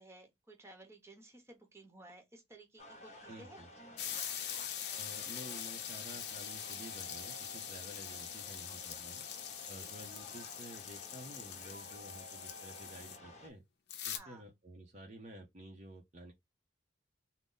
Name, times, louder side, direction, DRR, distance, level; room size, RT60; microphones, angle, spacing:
voice 1, 0.0-3.6 9.8-9.9 14.1-14.5, right 2 dB, 15° right, 0.9 m, -56 dB
sound 1, 2.8-13.5, left 1 dB, 35° left, 1.0 m, -53 dB
voice 2, 3.3-3.7 5.0-9.2 9.7-13.6 14.1-16.3, right 1 dB, 35° right, 0.6 m, -51 dB
sound 2, 4.0-13.2 13.9-14.2, left 9 dB, 60° left, 0.6 m, -43 dB
3.7 x 2.0 x 3.8 m
head